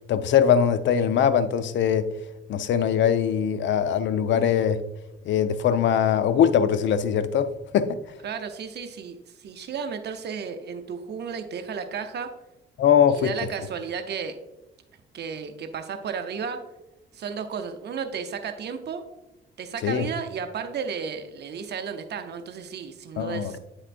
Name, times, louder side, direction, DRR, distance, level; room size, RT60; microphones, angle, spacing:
voice 1, 0.1-2.1 2.5-4.8 5.3-8.0 12.8-13.3 19.8-20.0 23.2-23.6, left 8 dB, 70° left, 0.5 m, -21 dB
voice 2, 8.2-12.3 13.1-14.4 15.1-16.6 17.1-19.0 19.6-23.6, right 6 dB, 55° right, 0.6 m, -33 dB
8.8 x 4.3 x 2.5 m
cardioid pair, 90°, 20 cm